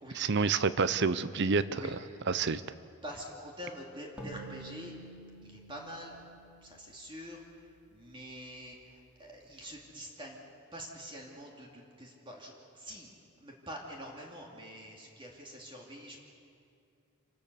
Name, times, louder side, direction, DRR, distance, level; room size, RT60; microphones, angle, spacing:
voice 1, 0.1-1.8 2.3-2.6, right 4 dB, 50° right, 15 dB, 0.7 m, -28 dB
voice 2, 3.0-4.9 5.4-6.2 6.6-10.4 10.7-13.1 13.4-16.2, equal, 20° right, -1 dB, 2.5 m, -46 dB
sound 1, 4.2-7.7, right 2 dB, 5° right, 3.2 m, -49 dB
27.5 x 17.5 x 6.9 m, 2.5 s
head